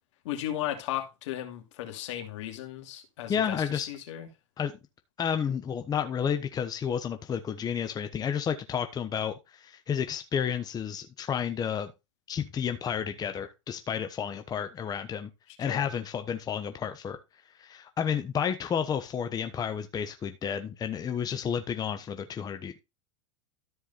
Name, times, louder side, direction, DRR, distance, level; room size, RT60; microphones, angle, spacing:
voice 1, 0.2-4.3 15.6-15.9, left 12 dB, 65° left, 2.6 m, -36 dB
voice 2, 3.3-3.9 4.6-4.7 5.2-11.9 12.3-15.3 15.6-17.2 17.6-22.8, left 8 dB, 25° left, 1.1 m, -31 dB
13.5 x 4.8 x 4.1 m
hypercardioid pair, 110°, 16 cm